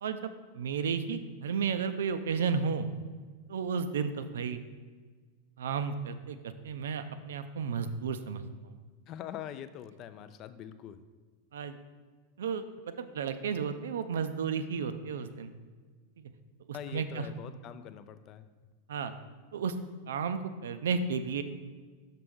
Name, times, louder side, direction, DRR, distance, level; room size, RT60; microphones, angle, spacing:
voice 1, 0.0-2.9 3.5-4.6 5.6-8.7 11.5-11.8 12.4-15.5 16.2-16.3 16.9-17.3 18.9-19.1 19.5-19.7 20.1-21.4, right 6 dB, 60° right, 11 dB, 0.4 m, -33 dB
voice 2, 9.1-11.0 16.7-18.5, left 10 dB, 35° left, 12 dB, 0.3 m, -43 dB
5.8 x 5.7 x 3.5 m, 1.4 s
figure-of-eight pair, 90°, 0 cm